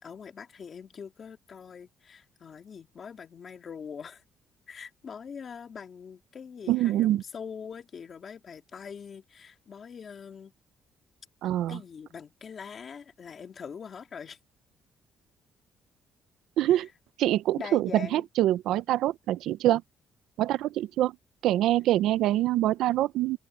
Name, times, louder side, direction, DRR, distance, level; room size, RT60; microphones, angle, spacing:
voice 1, 0.0-4.2 4.7-10.5 11.7-14.4 16.7-16.9 17.6-18.2, left 6 dB, 35° left, 2.6 m, -43 dB
voice 2, 6.7-7.2 11.4-11.8 16.6-16.9 17.2-19.8 20.4-21.1 21.4-23.4, right 13 dB, 80° right, 0.6 m, -25 dB
open air
cardioid pair, 165°, 0 cm